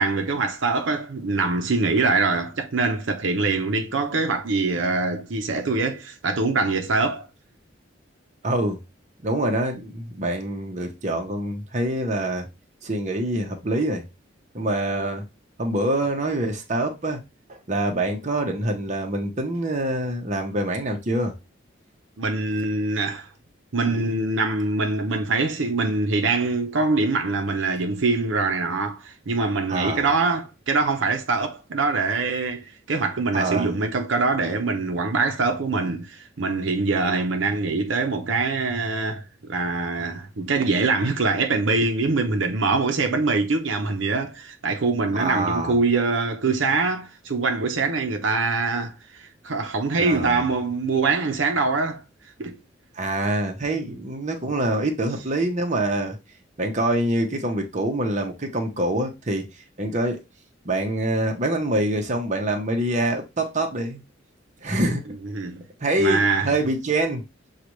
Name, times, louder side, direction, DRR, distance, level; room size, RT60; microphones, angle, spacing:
voice 1, 0.0-7.3 22.2-23.3 23.7-52.0 52.4-52.6 53.9-54.0 65.1-65.6 66.0-66.5, right 3 dB, 80° right, 0.7 m, -24 dB
voice 2, 8.4-8.8 9.2-12.5 12.8-14.0 14.5-15.2 15.6-17.2 17.5-21.3 29.7-30.1 33.3-33.7 45.1-45.7 50.0-50.4 52.9-56.2 56.6-59.5 59.8-60.2 60.6-64.0 64.6-65.1 65.8-67.2, right 1 dB, 40° right, 0.9 m, -25 dB
6.6 x 2.4 x 3.1 m
head